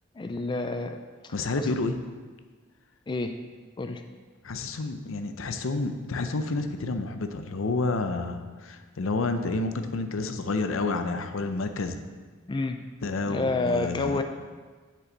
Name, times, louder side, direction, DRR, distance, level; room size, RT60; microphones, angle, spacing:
voice 1, 0.2-1.0 1.2-1.7 3.1-3.3 3.8-4.0 12.5-12.8 13.3-14.2, left 3 dB, 20° left, 7 dB, 0.3 m, -29 dB
voice 2, 1.3-2.0 4.4-12.0 13.0-14.2, left 3 dB, 70° left, 8 dB, 0.6 m, -29 dB
7.5 x 6.7 x 4.0 m, 1.4 s
head